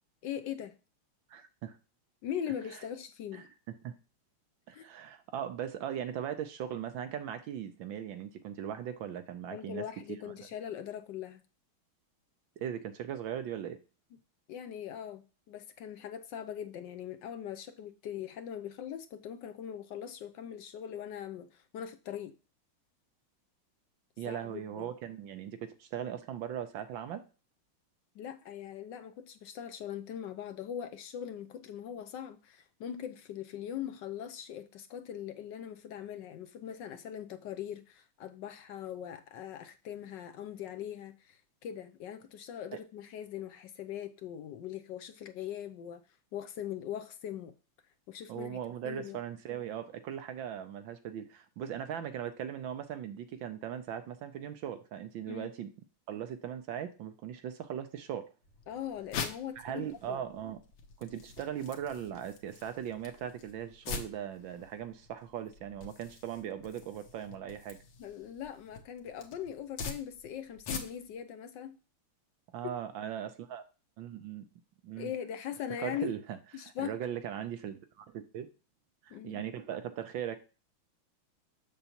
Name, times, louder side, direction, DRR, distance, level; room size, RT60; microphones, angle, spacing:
voice 1, 0.2-0.8 2.2-3.5 4.7-4.9 9.5-11.4 14.5-22.4 24.2-24.9 28.1-46.0 46.3-47.5 48.1-48.6 48.8-49.2 51.6-51.7 55.3-55.5 58.7-60.2 68.0-71.8 72.6-72.7 75.0-76.2 76.5-77.0 79.1-79.5, left 9 dB, 70° left, 1.1 m, -41 dB
voice 2, 1.3-1.8 3.3-3.5 3.8-3.9 4.7-9.8 12.6-13.8 24.2-27.2 48.3-55.7 56.1-58.3 59.6-60.6 61.0-67.8 72.5-73.6 74.0-74.4 74.8-75.1 75.8-78.5 79.0-80.4, right 9 dB, 70° right, 1.4 m, -39 dB
sound 1, 58.4-71.2, left 5 dB, 90° left, 2.0 m, -45 dB
6.9 x 6.7 x 2.9 m
omnidirectional pair, 2.3 m